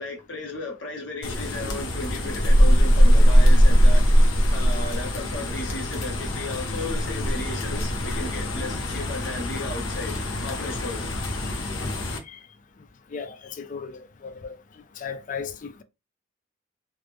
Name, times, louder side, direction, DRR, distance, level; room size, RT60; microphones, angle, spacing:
voice 1, 0.0-4.1 4.5-10.1 10.4-11.2, left 2 dB, 70° left, 1.0 m, -35 dB
sound 1, 1.2-12.2, equal, 90° left, 0.7 m, -21 dB
voice 2, 13.1-14.6 15.0-15.8, left 6 dB, 40° left, 0.4 m, -36 dB
3.2 x 2.0 x 3.3 m
head